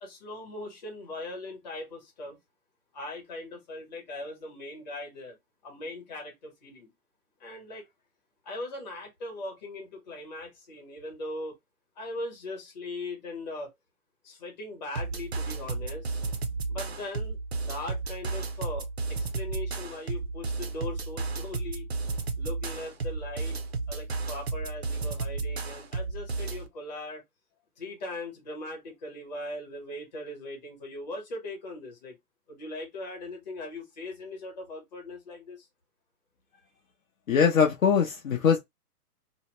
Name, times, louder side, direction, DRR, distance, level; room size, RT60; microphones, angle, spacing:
voice 1, 0.0-2.4 2.9-5.4 5.6-6.9 7.4-7.9 8.4-11.6 12.0-13.7 14.2-16.2 16.7-17.4 17.6-21.9 22.4-23.6 23.9-27.2 27.8-32.1 32.5-35.7, left 2 dB, 30° left, 1.0 m, -39 dB
sound 1, 15.0-26.7, right 3 dB, 45° right, 0.4 m, -33 dB
voice 2, 37.3-38.6, left 7 dB, 60° left, 0.7 m, -22 dB
2.8 x 2.0 x 2.9 m
hypercardioid pair, 165°, 46 cm